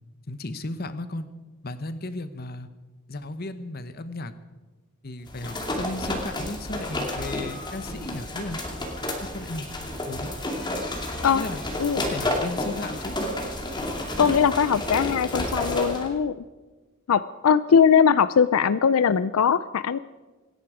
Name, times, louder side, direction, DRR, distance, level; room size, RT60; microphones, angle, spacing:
voice 1, 0.3-1.3 1.6-2.7 3.1-4.3 5.0-8.6 9.3-9.7 10.1-10.3 11.3-11.7 12.0-13.2, left 2 dB, 45° left, 12 dB, 1.0 m, -35 dB
sound 1, 5.3-16.1, left 1 dB, 20° left, 2.4 m, -31 dB
voice 2, 14.2-16.3 17.1-20.0, left 7 dB, 80° left, 15 dB, 0.4 m, -20 dB
26.0 x 10.5 x 5.0 m, 1.3 s
head